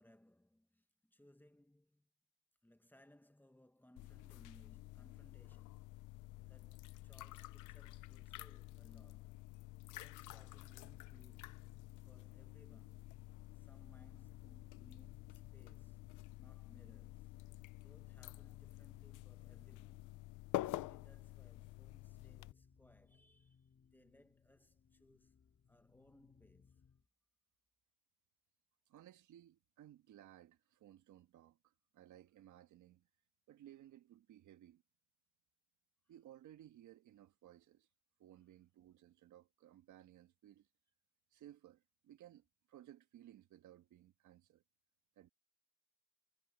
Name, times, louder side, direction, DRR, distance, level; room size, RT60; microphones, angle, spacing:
voice 1, 0.0-2.1 2.6-5.9 6.4-9.5 9.9-11.7 12.0-13.1 13.5-16.0 16.4-17.4 17.8-20.1 20.6-25.4 25.7-26.8, left 1 dB, 5° left, 1.6 m, -67 dB
sound 1, 4.0-22.5, left 17 dB, 90° left, 0.7 m, -49 dB
sound 2, 10.0-27.1, left 6 dB, 45° left, 5.0 m, -70 dB
voice 2, 28.9-33.1 33.5-34.8 36.1-37.9 38.2-40.7 41.3-44.6 45.2-45.3, right 12 dB, 80° right, 1.6 m, -60 dB
cardioid pair, 90°, 30 cm